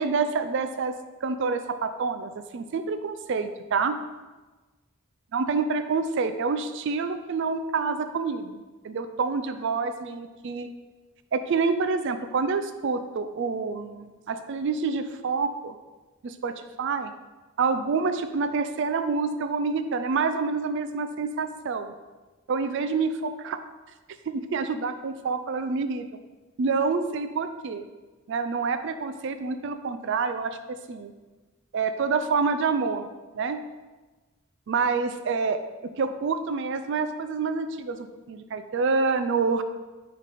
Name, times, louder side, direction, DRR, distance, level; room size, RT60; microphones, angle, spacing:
voice 1, 0.0-4.0 5.3-10.7 11.3-15.8 16.2-17.1 17.6-21.9 22.5-23.6 24.3-26.1 26.6-27.8 28.3-30.6 30.9-31.1 31.7-33.1 33.3-33.6 34.7-35.6 36.0-39.6, right 4 dB, 55° right, 9 dB, 0.3 m, -27 dB
9.5 x 3.2 x 4.1 m, 1.2 s
head